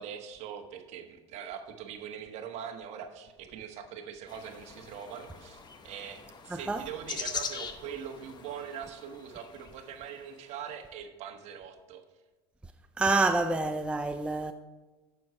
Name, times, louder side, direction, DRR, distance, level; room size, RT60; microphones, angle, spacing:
voice 1, 0.0-12.0, right 8 dB, 50° right, 1.3 m, -42 dB
sound 1, 4.3-10.5, left 6 dB, 30° left, 1.0 m, -42 dB
voice 2, 6.5-6.8 13.0-14.5, right 3 dB, 5° right, 0.4 m, -27 dB
9.0 x 7.1 x 4.6 m
hypercardioid pair, 100°, 14 cm